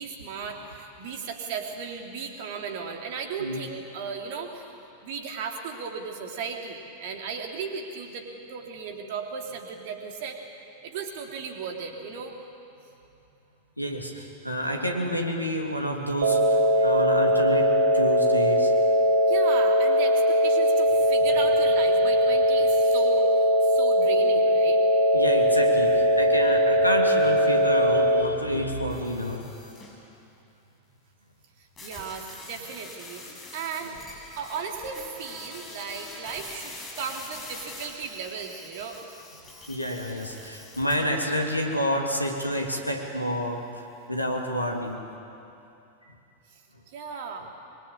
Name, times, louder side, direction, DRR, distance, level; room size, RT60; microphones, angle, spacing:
voice 1, 0.0-4.7 5.0-10.4 10.8-12.3 19.3-24.8 31.6-34.0 34.3-39.1 46.5-47.5, right 5 dB, 50° right, 2 dB, 3.4 m, -36 dB
voice 2, 13.8-18.7 25.1-29.4 39.7-43.8 44.1-45.0, equal, 90° left, 1 dB, 2.9 m, -29 dB
sound 1, 16.2-28.2, equal, 65° right, 1.8 m, -20 dB
sound 2, 28.9-30.0 31.8-40.9, left 2 dB, 20° left, 7.6 m, -44 dB
24.0 x 24.0 x 8.9 m, 2.7 s
figure-of-eight pair, 90°, 0 cm